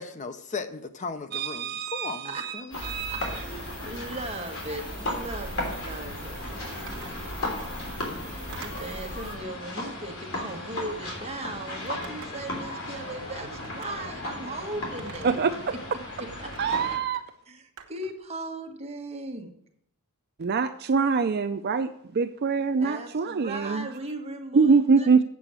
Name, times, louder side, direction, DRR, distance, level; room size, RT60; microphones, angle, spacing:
voice 1, 0.0-2.8, left 4 dB, 35° left, 10 dB, 0.6 m, -36 dB
voice 2, 1.3-3.4 15.2-15.5 16.6-17.2 20.4-23.9 24.5-25.2, right 5 dB, 45° right, 9 dB, 0.4 m, -24 dB
sound 1, 2.7-17.0, left 2 dB, 65° left, 3.4 m, -36 dB
sound 2, 2.7-9.4, right 1 dB, 5° left, 3.2 m, -41 dB
voice 3, 2.8-6.4 8.2-15.4 15.9-16.0 16.4-16.5 17.5-19.5 22.8-25.2, right 2 dB, 30° right, 3 dB, 1.5 m, -38 dB
Telephone, 6.9-7.2 8.5-9.0 10.2-10.6 11.8-12.5 13.5-13.9 15.0-15.5 16.5-16.7 17.8-18.2, right 4 dB, 75° right, 1.2 m, -44 dB
8.4 x 6.9 x 7.4 m, 0.71 s
head